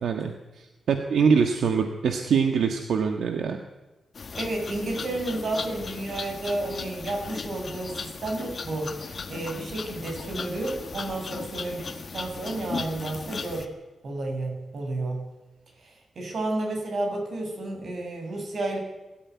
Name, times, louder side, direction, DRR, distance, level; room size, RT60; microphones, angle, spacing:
voice 1, 0.0-3.6, right 6 dB, 85° right, 5 dB, 1.5 m, -24 dB
sound 1, 4.2-13.7, left 4 dB, 45° left, 1.6 m, -37 dB
voice 2, 4.4-13.7 14.0-15.2 15.8-18.8, right 2 dB, 55° right, 2 dB, 7.1 m, -31 dB
21.5 x 13.5 x 9.6 m, 1.1 s
wide cardioid pair, 130°, 0 cm